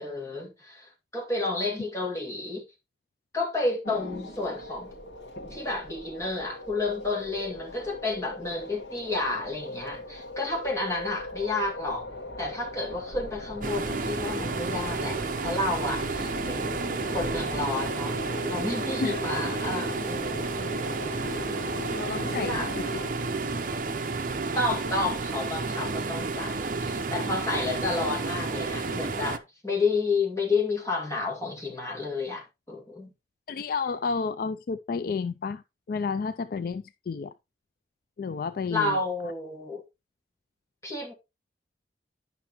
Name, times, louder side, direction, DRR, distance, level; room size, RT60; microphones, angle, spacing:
voice 1, 0.0-2.6 3.3-4.9 5.5-12.1 12.4-18.2 18.5-20.7 22.3-23.0 24.6-33.1 38.7-39.8 40.8-41.1, left 3 dB, 15° left, 2.1 m, -31 dB
sound 1, 3.8-23.1, left 1 dB, 75° left, 1.6 m, -39 dB
sound 2, 13.6-29.4, right 3 dB, 50° right, 0.7 m, -31 dB
voice 2, 22.0-23.0 33.5-35.6 35.9-37.3 38.2-39.0, left 5 dB, 55° left, 0.3 m, -31 dB
10.5 x 5.8 x 3.0 m
head